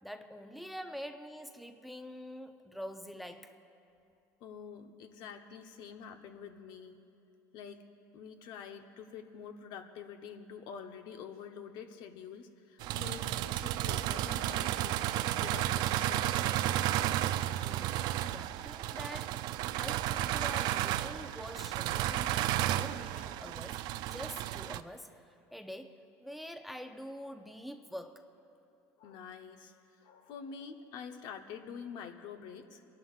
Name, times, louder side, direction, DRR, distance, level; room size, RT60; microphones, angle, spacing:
voice 1, 0.0-3.6 17.6-18.0 18.3-25.1 25.5-28.2, equal, ahead, 7 dB, 0.6 m, -46 dB
voice 2, 4.4-7.0 7.5-7.8 8.1-16.6 18.9-19.1 29.0-32.9, left 7 dB, 65° left, 6 dB, 0.9 m, -47 dB
sound 1, 12.8-24.8, right 13 dB, 60° right, 0.4 m, -33 dB
27.5 x 11.5 x 2.4 m, 2.6 s
supercardioid pair, 105°, 8 cm